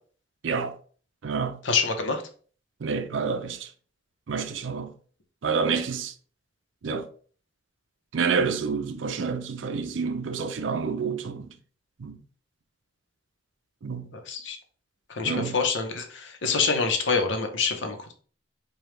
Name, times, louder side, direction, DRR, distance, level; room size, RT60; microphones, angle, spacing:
voice 1, 0.4-0.7 1.2-1.6 2.8-3.7 4.3-4.9 5.4-6.1 6.8-7.1 8.1-11.5 12.0-12.2 13.8-14.1 15.2-15.6, right 5 dB, 85° right, 0.5 m, -28 dB
voice 2, 1.6-2.2 14.1-14.6 15.1-18.1, left 4 dB, 80° left, 0.7 m, -26 dB
4.9 x 2.3 x 3.1 m
head